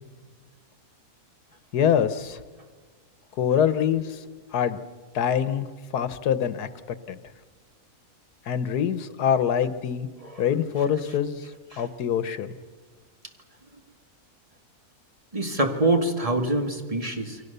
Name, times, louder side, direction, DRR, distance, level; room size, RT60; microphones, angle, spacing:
voice 1, 1.7-2.4 3.4-4.2 4.5-4.8 5.1-5.7 5.9-7.2 8.5-10.1 10.4-11.4 11.8-12.6, left 8 dB, 85° left, 13 dB, 1.5 m, -24 dB
voice 2, 15.3-17.4, right 2 dB, 20° right, 4 dB, 2.1 m, -25 dB
29.0 x 23.0 x 6.8 m, 1.5 s
omnidirectional pair, 1.6 m